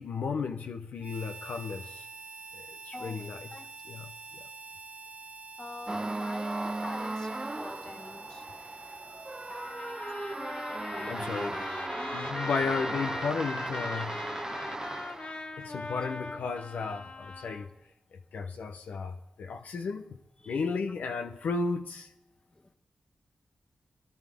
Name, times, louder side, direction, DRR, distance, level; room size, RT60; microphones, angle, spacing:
voice 1, 0.0-2.1 2.5-3.5 3.9-4.4 11.0-11.6 12.1-14.2 15.6-17.7 18.1-20.1 20.5-22.1, left 4 dB, 85° left, 0.8 m, -34 dB
Harmonica, 1.0-12.1, right 3 dB, 50° right, 0.8 m, -47 dB
voice 2, 2.9-3.7 5.6-8.4 10.9-12.4 13.9-14.6 20.4-20.6 22.5-22.7, left 2 dB, 30° left, 1.3 m, -46 dB
sound 1, 5.9-15.5, right 2 dB, 25° right, 0.4 m, -37 dB
Trumpet, 9.5-17.7, left 2 dB, 50° left, 1.3 m, -40 dB
21.0 x 11.5 x 3.5 m
cardioid pair, 45°, 3 cm